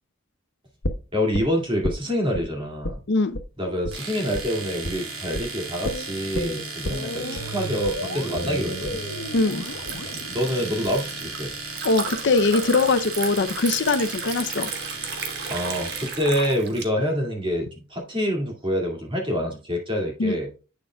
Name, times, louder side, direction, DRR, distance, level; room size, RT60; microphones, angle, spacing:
sound 1, 0.8-2.5 2.8-3.0 3.3-3.5 3.8-4.0 4.3-4.5 4.8-5.0 5.3-5.5 5.8-11.8 12.1-12.2, equal, 85° left, 1.1 m, -32 dB
voice 1, 1.1-2.9 3.6-9.0 10.3-11.5 15.5-20.5, equal, 25° right, 2.2 m, -26 dB
voice 2, 3.1-3.4 9.3-9.7 11.8-14.7 20.2-20.4, left 3 dB, 60° left, 0.6 m, -22 dB
Domestic sounds home sounds, 3.9-16.2, right 4 dB, 85° right, 2.5 m, -36 dB
Liquid, 8.5-16.8, right 5 dB, 55° right, 1.3 m, -35 dB
8.6 x 6.6 x 2.3 m
head